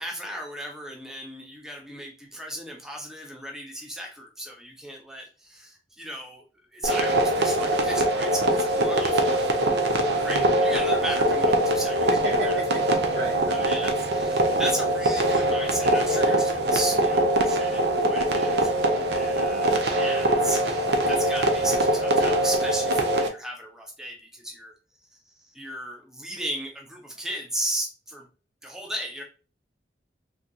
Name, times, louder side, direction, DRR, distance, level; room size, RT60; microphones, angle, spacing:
voice 1, 0.0-6.4 6.7-9.5 10.2-12.6 13.5-24.7 25.1-28.3 28.6-29.2, equal, 5° right, 0 dB, 0.5 m, -35 dB
sound 1, 6.8-23.3, right 1 dB, 70° right, 0.6 m, -23 dB
voice 2, 10.2-10.6 12.1-13.4, right 2 dB, 90° right, -3 dB, 1.6 m, -34 dB
3.7 x 2.8 x 2.3 m, 0.35 s
head